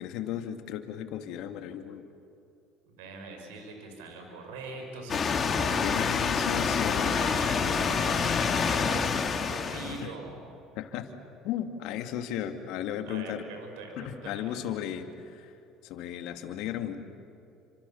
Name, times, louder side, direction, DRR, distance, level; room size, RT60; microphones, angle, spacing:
voice 1, 0.0-2.0 5.8-7.1 10.0-10.1 10.8-11.2 11.4-13.4 14.0-15.5 15.8-17.0, left 10 dB, 70° left, 7 dB, 2.3 m, -35 dB
voice 2, 2.9-6.0 7.0-10.4 13.0-14.5, right 4 dB, 85° right, 3 dB, 5.7 m, -43 dB
sound 1, 5.1-10.0, left 5 dB, 35° left, 2.8 m, -27 dB
29.5 x 26.5 x 7.3 m, 2.8 s
supercardioid pair, 85°, 0 cm